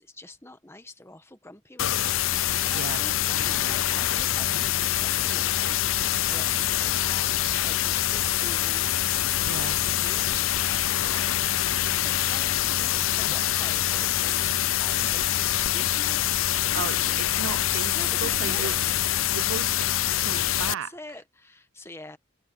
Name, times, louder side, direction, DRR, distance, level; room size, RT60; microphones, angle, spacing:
voice 1, 0.0-17.2 17.9-19.1 20.7-22.2, left 2 dB, 15° left, 1.5 m, -45 dB
sound 1, 1.8-20.7, left 12 dB, 85° left, 0.6 m, -25 dB
voice 2, 9.4-9.8 16.7-18.8 19.3-20.9, right 7 dB, 75° right, 0.4 m, -35 dB
head